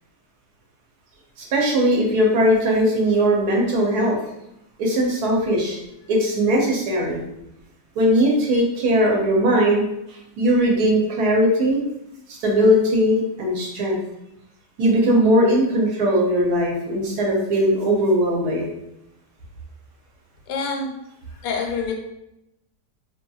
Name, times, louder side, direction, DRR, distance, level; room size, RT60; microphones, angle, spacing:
voice 1, 1.4-4.2 4.8-5.8 6.1-7.2 8.0-9.8 10.4-11.8 12.4-14.0 14.8-18.7, equal, 70° right, -2 dB, 1.2 m, -19 dB
voice 2, 20.5-20.9 21.4-21.9, left 4 dB, 85° left, 2 dB, 1.2 m, -26 dB
2.8 x 2.7 x 2.3 m, 0.85 s
omnidirectional pair, 1.8 m